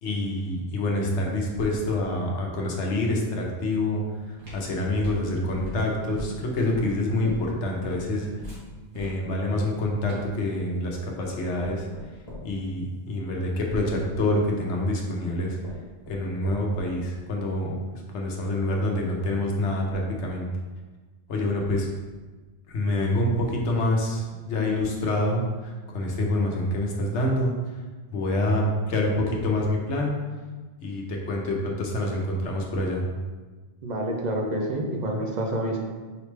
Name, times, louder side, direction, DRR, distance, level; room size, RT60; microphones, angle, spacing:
voice 1, 0.0-4.0 4.3-8.3 8.9-11.9 12.4-15.6 16.1-20.5 21.3-21.9 22.7-27.5 28.1-30.1 30.8-33.1, left 1 dB, 80° left, 0 dB, 1.1 m, -26 dB
sound 1, 3.9-10.4, equal, 75° right, 1.8 m, -39 dB
sound 2, 10.5-10.8 11.6-13.5 14.5-14.6 15.2-15.3 15.6-17.0 17.5-17.6 17.9-18.0, left 1 dB, 40° left, 1.2 m, -44 dB
voice 2, 33.8-35.8, right 1 dB, 50° right, 1 dB, 0.6 m, -28 dB
4.9 x 3.2 x 3.2 m, 1.3 s
omnidirectional pair, 1.2 m